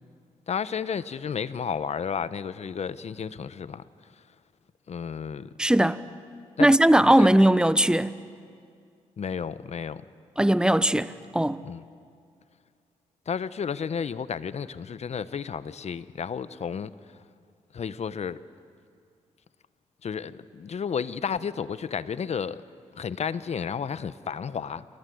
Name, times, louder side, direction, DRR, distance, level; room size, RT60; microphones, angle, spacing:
voice 1, 0.5-3.8 4.9-5.5 6.6-6.9 7.2-7.4 9.2-10.0 11.6-11.8 13.3-16.9 17.7-18.4 20.0-22.6 22.9-24.9, left 7 dB, 55° left, 0.9 m, -32 dB
voice 2, 5.6-6.0 6.6-8.1 10.4-11.6, right 1 dB, 5° right, 1.0 m, -19 dB
27.5 x 23.5 x 7.8 m
supercardioid pair, 55°, 13 cm